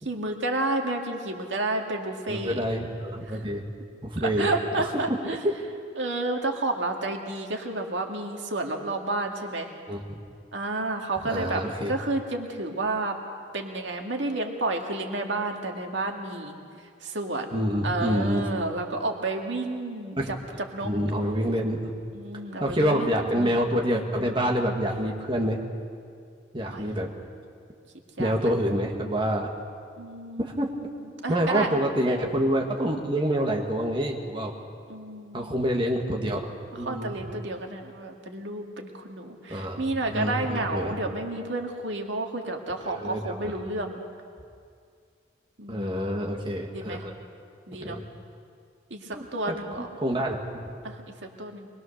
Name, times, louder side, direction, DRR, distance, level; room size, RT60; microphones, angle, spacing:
voice 1, 0.0-2.6 4.2-5.5 6.0-9.7 10.5-13.2 13.5-16.6 17.0-20.9 22.1-23.1 26.7-26.8 28.2-28.5 30.0-30.8 31.0-31.7 34.9-35.5 36.7-44.0 45.6-46.1 46.7-47.0 47.7-48.0 48.9-49.9 50.8-51.7, right 2 dB, 75° right, 2 dB, 2.0 m, -31 dB
voice 2, 2.3-3.6 4.0-4.5 4.8-5.2 5.4-5.5 9.9-10.2 11.3-11.9 17.5-18.5 20.2-20.3 20.8-21.8 22.6-25.6 26.5-27.1 28.2-29.5 30.4-30.7 31.3-34.5 35.3-36.4 36.8-37.1 39.5-41.0 42.8-43.5 45.7-47.1 47.8-48.0 49.1-49.6 50.0-50.7, equal, 25° right, 0 dB, 1.8 m, -27 dB
24.0 x 21.0 x 6.6 m, 2.2 s
head